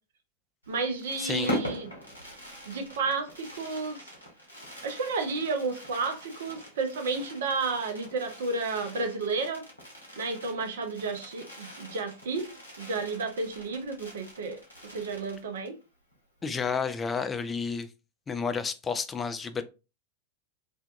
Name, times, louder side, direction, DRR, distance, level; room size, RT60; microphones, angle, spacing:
Fireworks, 0.6-15.8 16.1-16.2 16.4-16.7, left 1 dB, 80° left, 0.9 m, -43 dB
voice 1, 0.7-1.9 2.7-4.0 4.8-9.6 10.2-12.5 12.8-15.8, right 4 dB, 60° right, 0.5 m, -32 dB
voice 2, 1.2-1.6 16.4-17.9 18.3-19.6, left 5 dB, 15° left, 0.3 m, -31 dB
2.5 x 2.2 x 2.4 m
figure-of-eight pair, 90°, 0 cm